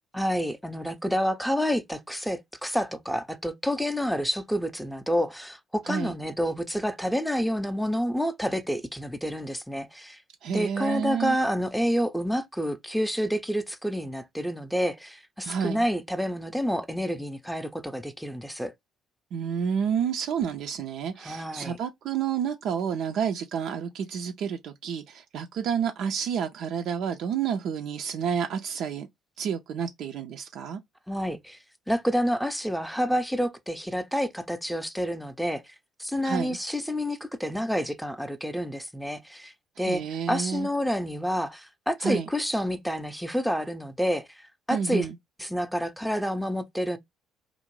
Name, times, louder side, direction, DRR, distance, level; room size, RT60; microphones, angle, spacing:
voice 1, 0.1-10.2 10.5-18.7 21.2-21.8 31.1-31.6 31.9-35.7 36.0-40.0 40.3-44.3 44.7-45.1 45.4-47.0, equal, ahead, 0.5 m, -28 dB
voice 2, 10.4-11.4 15.5-15.8 19.3-29.1 29.4-30.8 36.2-36.6 39.8-40.7 42.0-42.3 44.7-45.2, right 7 dB, 60° right, 0.3 m, -30 dB
2.4 x 2.0 x 3.0 m
figure-of-eight pair, 50°, 0 cm